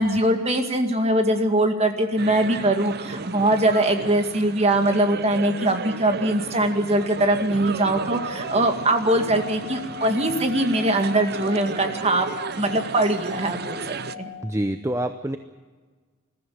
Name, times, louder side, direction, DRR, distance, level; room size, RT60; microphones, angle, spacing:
voice 1, 0.0-12.3 12.5-14.3, right 1 dB, 30° right, 5 dB, 2.1 m, -22 dB
sound 1, 2.2-14.2, right 4 dB, 50° right, 0.6 m, -34 dB
Singing / Glass, 8.0-14.6, left 8 dB, 35° left, 2.5 m, -39 dB
voice 2, 14.4-15.4, right 1 dB, 15° right, 8 dB, 0.7 m, -26 dB
21.0 x 14.5 x 9.3 m, 1.4 s
head